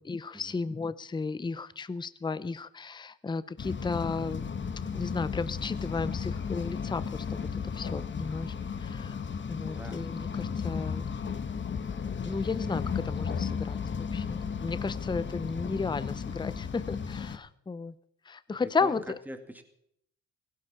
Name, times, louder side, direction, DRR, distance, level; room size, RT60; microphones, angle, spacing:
voice 1, 0.0-8.5 8.8-9.2 9.5-11.1 12.2-17.9 18.3-19.0, left 4 dB, 15° left, 16 dB, 0.6 m, -34 dB
sound 1, 3.6-17.4, left 6 dB, 40° left, 1.3 m, -34 dB
voice 2, 9.7-10.1 18.6-19.6, equal, 5° right, 6 dB, 2.2 m, -44 dB
17.0 x 16.5 x 4.3 m, 0.74 s
cardioid pair, 90°, 30 cm